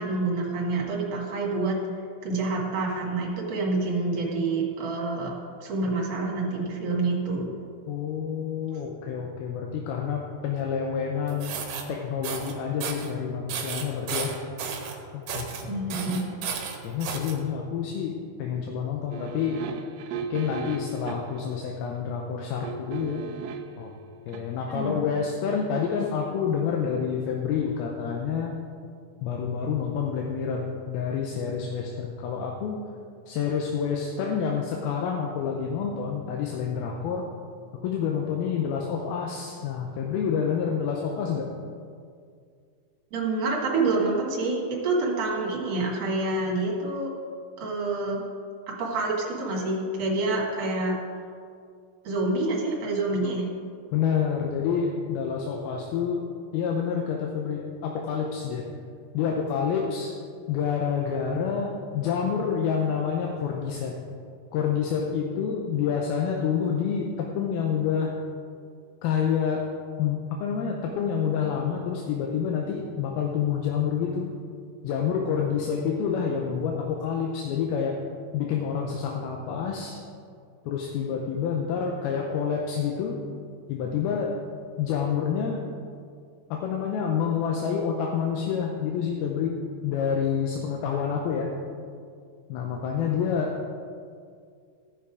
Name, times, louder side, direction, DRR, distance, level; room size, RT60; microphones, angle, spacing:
voice 1, 0.0-1.8 2.2-5.3 5.6-7.5 8.7-8.8 15.7-16.3 24.7-25.0 43.1-47.1 47.6-48.2 48.7-50.9 52.0-53.5, right 3 dB, 50° right, -2 dB, 2.6 m, -27 dB
voice 2, 7.9-11.5 11.9-14.3 15.3-15.8 16.8-19.6 20.3-23.2 23.8-23.9 24.3-28.6 29.2-32.8 33.3-37.2 37.8-41.5 53.9-56.3 56.5-58.6 59.1-60.2 60.5-63.9 64.5-68.2 69.0-69.7 70.0-74.3 74.8-77.9 78.3-80.0 80.6-83.2 83.7-84.3 84.8-85.6 86.5-91.5 92.5-93.5, left 7 dB, 80° left, 0 dB, 2.6 m, -28 dB
sound 1, 11.3-11.8 12.2-12.5 12.8-13.1 13.5-14.9 15.3-15.6 15.9-17.3, right 6 dB, 65° right, 2.5 m, -33 dB
sound 2, 19.1-21.4 22.6-23.8 24.3-24.4, right 7 dB, 90° right, 2.6 m, -36 dB
15.0 x 5.9 x 4.9 m, 2.2 s
omnidirectional pair, 4.5 m